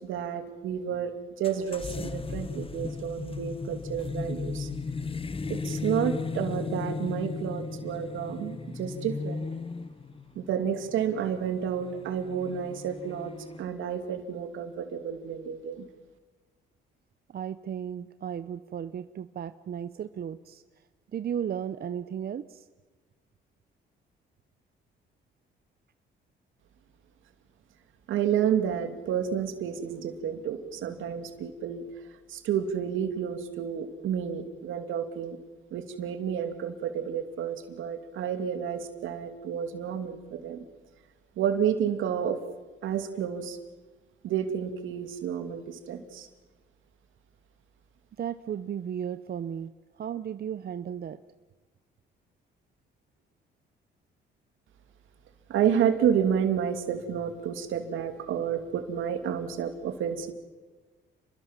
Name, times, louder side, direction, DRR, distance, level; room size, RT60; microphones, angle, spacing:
voice 1, 0.0-1.1 1.4-4.7 5.5-9.4 10.3-13.3 13.6-15.9 28.1-31.8 32.3-35.4 35.7-40.6 41.4-42.4 42.8-43.6 44.2-46.3 55.5-60.3, right 8 dB, 80° right, 8 dB, 2.8 m, -30 dB
sound 1, 1.4-13.6, left 4 dB, 25° left, 1.2 m, -36 dB
voice 2, 17.3-20.6 21.1-22.7 48.2-51.2, right 8 dB, 50° right, 12 dB, 0.8 m, -35 dB
29.5 x 21.0 x 7.6 m, 1.3 s
cardioid pair, 90°, 20 cm